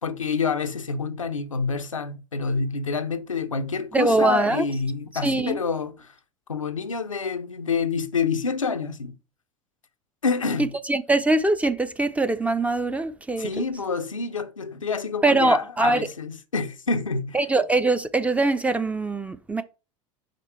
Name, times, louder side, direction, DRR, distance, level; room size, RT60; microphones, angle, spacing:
voice 1, 0.0-6.1 6.5-9.1 10.2-10.6 13.4-17.4, left 5 dB, 85° left, 0.6 m, -27 dB
voice 2, 3.9-4.6 5.2-5.6 10.6-13.6 15.2-16.1 17.3-19.6, right 2 dB, 10° right, 0.5 m, -22 dB
5.1 x 3.9 x 5.5 m
figure-of-eight pair, 75°, 17 cm